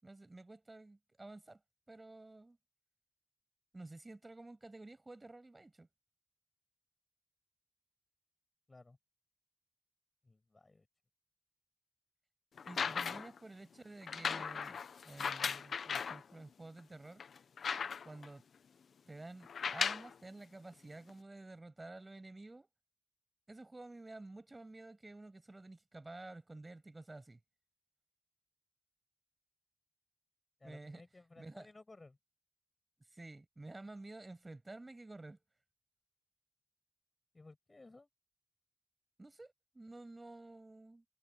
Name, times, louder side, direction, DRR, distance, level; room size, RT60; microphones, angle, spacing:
voice 1, 0.0-1.6 1.9-2.6 3.7-5.9 12.7-17.2 18.0-18.4 19.1-22.7 23.5-27.4 30.6-31.0 31.4-31.7 33.1-35.4 39.2-41.0, right 2 dB, 35° right, 6.4 m, -51 dB
voice 2, 10.2-10.9 12.8-13.2 30.6-32.2 37.3-38.1, left 2 dB, 40° left, 6.1 m, -58 dB
sound 1, 12.6-13.4 14.1-16.2 16.8-16.9 17.2-18.3 19.4-20.1 21.1-21.2, left 6 dB, 85° left, 0.8 m, -37 dB
cardioid pair, 45°, 0 cm